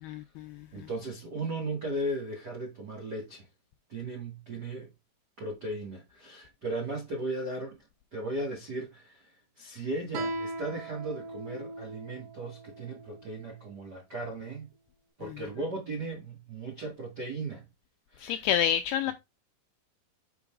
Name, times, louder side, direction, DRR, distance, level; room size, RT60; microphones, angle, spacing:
voice 1, 0.0-0.9 15.2-15.3 18.2-19.1, left 10 dB, 85° left, 2.2 m, -29 dB
voice 2, 0.7-3.5 3.9-4.9 5.4-7.8 8.1-14.7 15.2-17.6 18.1-18.4, right 2 dB, 70° right, 0.9 m, -36 dB
Guitar, 10.1-13.4, right 2 dB, 90° right, 4.3 m, -39 dB
7.8 x 5.9 x 2.4 m
omnidirectional pair, 5.0 m